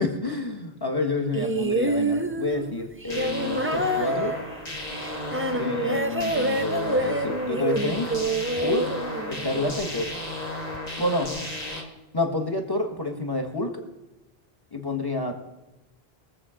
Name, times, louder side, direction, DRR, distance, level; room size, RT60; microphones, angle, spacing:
voice 1, 0.0-4.4 5.5-8.2 8.6-8.8 9.3-10.1 11.0-11.3 12.1-13.8 14.7-15.3, left 2 dB, 20° left, 3 dB, 1.6 m, -28 dB
sound 1, 1.3-9.7 10.7-10.8, right 1 dB, 15° right, 0.6 m, -27 dB
sound 2, 3.1-11.8, left 1 dB, 40° left, 2.2 m, -34 dB
22.0 x 7.6 x 5.0 m, 1.0 s
omnidirectional pair, 1.0 m